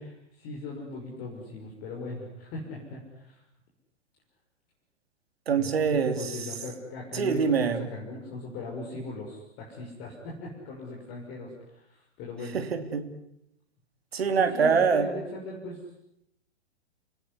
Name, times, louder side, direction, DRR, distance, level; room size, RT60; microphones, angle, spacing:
voice 1, 0.0-3.4 5.6-12.6 14.4-15.8, left 2 dB, 30° left, -2 dB, 6.0 m, -39 dB
voice 2, 5.5-6.5 7.1-7.8 12.5-13.1 14.1-15.1, right 6 dB, 60° right, 9 dB, 3.1 m, -25 dB
29.5 x 18.5 x 9.8 m, 0.79 s
figure-of-eight pair, 110°, 34 cm